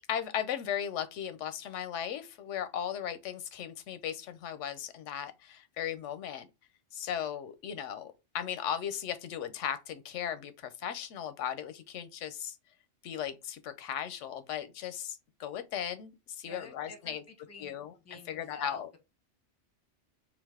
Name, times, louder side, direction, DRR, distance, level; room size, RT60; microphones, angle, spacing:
voice 1, 0.1-6.5 6.9-12.6 13.0-17.2 17.6-17.9 18.3-18.9, left 9 dB, 90° left, 0.9 m, -37 dB
voice 2, 16.4-19.0, left 3 dB, 15° left, 0.6 m, -50 dB
3.9 x 2.4 x 3.5 m
omnidirectional pair, 1.2 m